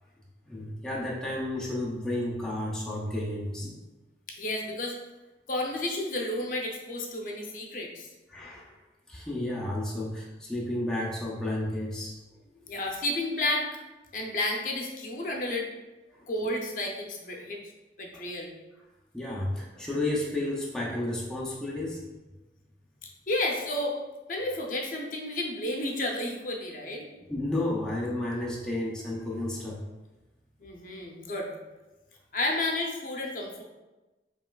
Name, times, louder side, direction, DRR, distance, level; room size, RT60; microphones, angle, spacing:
voice 1, 0.5-3.8 8.3-8.8 9.1-12.2 16.1-16.3 18.1-18.2 19.1-22.1 27.3-29.8, left 1 dB, 5° left, -4 dB, 0.5 m, -32 dB
voice 2, 4.3-5.0 5.5-8.1 12.7-13.7 14.1-15.7 16.3-17.6 18.0-18.5 23.0-24.0 24.3-27.1 30.6-31.5 32.3-33.6, left 1 dB, 50° left, 1 dB, 0.6 m, -31 dB
5.1 x 3.0 x 2.3 m, 1.1 s
head